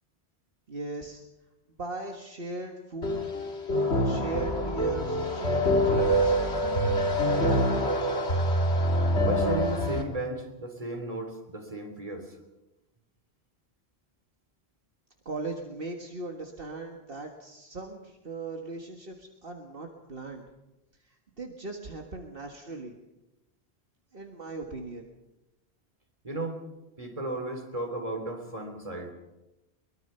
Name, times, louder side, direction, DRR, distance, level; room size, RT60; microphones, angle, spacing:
voice 1, 0.7-1.2 1.8-3.3 3.7-6.4 15.3-20.4 21.1-23.0 24.1-25.1, right 3 dB, 60° right, 2 dB, 2.0 m, -38 dB
sound 1, 3.0-10.0, equal, 80° left, 2.7 m, -25 dB
voice 2, 9.2-12.4 26.2-26.6 27.0-29.1, right 2 dB, 35° right, 4 dB, 3.5 m, -34 dB
23.0 x 22.0 x 5.7 m, 0.98 s
omnidirectional pair, 1.1 m